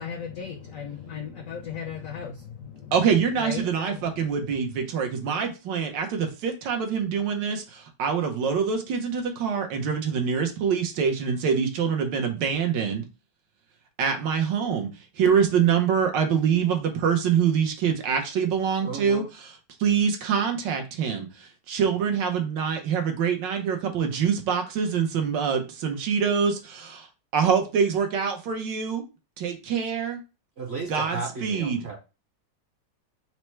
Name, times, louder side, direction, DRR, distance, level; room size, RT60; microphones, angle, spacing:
voice 1, 0.0-4.3, left 7 dB, 65° left, 0.8 m, -37 dB
voice 2, 2.9-13.0 14.0-14.9 15.2-19.2 19.8-26.5 27.3-29.0 29.4-30.2 30.9-31.8, right 7 dB, 80° right, 1.4 m, -25 dB
voice 3, 18.8-19.3 30.6-32.0, right 4 dB, 50° right, 0.8 m, -34 dB
4.3 x 2.1 x 4.4 m
omnidirectional pair, 2.0 m